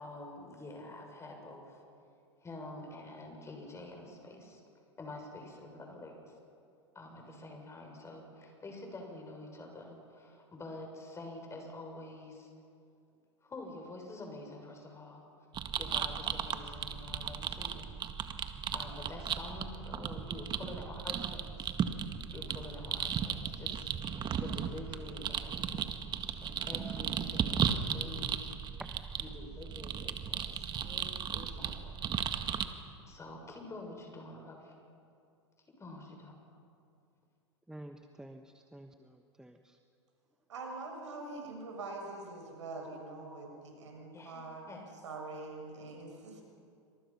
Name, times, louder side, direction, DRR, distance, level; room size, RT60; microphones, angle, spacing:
voice 1, 0.0-1.8 2.4-4.6 5.0-6.3 6.9-12.5 13.4-15.2 15.8-17.9 18.7-21.7 22.3-23.9 24.4-25.8 26.4-28.4 29.2-32.1 33.1-34.7 35.7-36.4 44.1-44.9, left 2 dB, 20° left, 2 dB, 7.0 m, -47 dB
sound 1, 15.5-32.7, right 8 dB, 30° right, 1.8 m, -36 dB
voice 2, 37.7-39.8, right 1 dB, 5° right, 5 dB, 1.3 m, -51 dB
voice 3, 40.5-44.6 45.0-46.4, right 3 dB, 80° right, 2 dB, 7.0 m, -44 dB
28.0 x 26.0 x 5.9 m, 2.5 s
hypercardioid pair, 100°, 15 cm